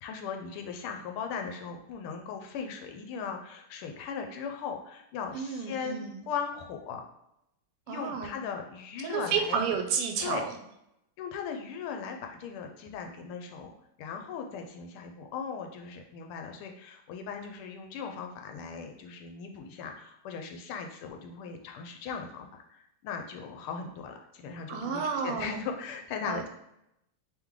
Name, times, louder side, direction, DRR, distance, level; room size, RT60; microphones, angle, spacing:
voice 1, 0.0-7.0 7.9-9.6 10.2-10.5 11.2-13.7 14.0-26.5, left 6 dB, 80° left, 4 dB, 1.4 m, -38 dB
voice 2, 5.3-6.2 7.9-8.3 9.0-10.5 24.7-25.6 26.2-26.5, right 6 dB, 85° right, 4 dB, 1.5 m, -31 dB
3.6 x 3.5 x 3.1 m, 0.82 s
omnidirectional pair, 2.4 m